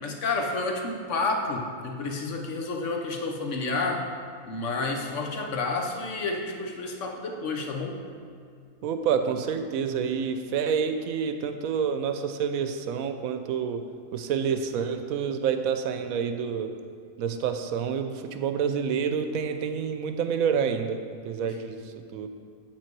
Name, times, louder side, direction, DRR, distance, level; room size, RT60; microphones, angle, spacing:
voice 1, 0.0-4.1 4.4-8.0 21.4-21.6, left 3 dB, 60° left, 2 dB, 1.2 m, -30 dB
voice 2, 8.8-13.9 14.1-16.8 17.2-22.3, right 7 dB, 80° right, 8 dB, 1.0 m, -28 dB
7.5 x 7.5 x 4.6 m, 2.2 s
omnidirectional pair, 1.5 m